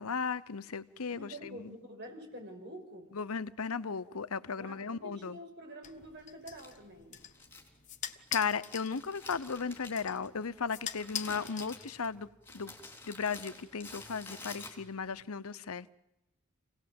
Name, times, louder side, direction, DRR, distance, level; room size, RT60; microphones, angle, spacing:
voice 1, 0.0-1.7 3.1-5.4 8.3-12.3 12.5-12.7 13.1-15.9, left 5 dB, 85° left, 0.8 m, -36 dB
voice 2, 1.1-3.1 4.6-7.2, right 1 dB, 50° right, 5.7 m, -47 dB
sound 1, 5.8-12.3, left 9 dB, 35° left, 1.1 m, -44 dB
Crumpling crinkling, 6.5-15.1, left 2 dB, 10° left, 3.7 m, -51 dB
27.5 x 18.0 x 7.8 m
head